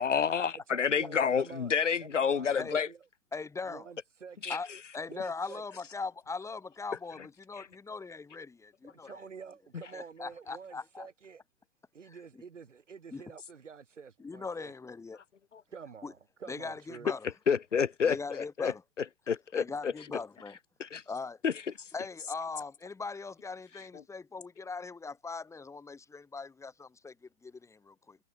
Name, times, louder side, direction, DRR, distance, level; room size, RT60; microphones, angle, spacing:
voice 1, 0.0-2.9 4.4-4.6 7.6-7.7 17.5-18.7 19.3-19.9 20.8-21.0 21.4-21.5, left 6 dB, 85° left, 3.3 m, -29 dB
voice 2, 0.5-1.7 2.1-3.0 3.7-4.6 5.1-5.6 8.9-11.4 11.9-14.7 15.7-17.1, right 6 dB, 90° right, 4.1 m, -48 dB
voice 3, 2.2-2.8 3.3-3.9 4.5-9.2 9.9-11.1 12.0-12.4 13.1-13.3 14.2-15.2 16.0-16.1 16.5-17.3 18.0-18.8 19.5-20.6 21.1-21.4 21.9-28.2, left 4 dB, 10° left, 5.8 m, -40 dB
hypercardioid pair, 135°, 35 cm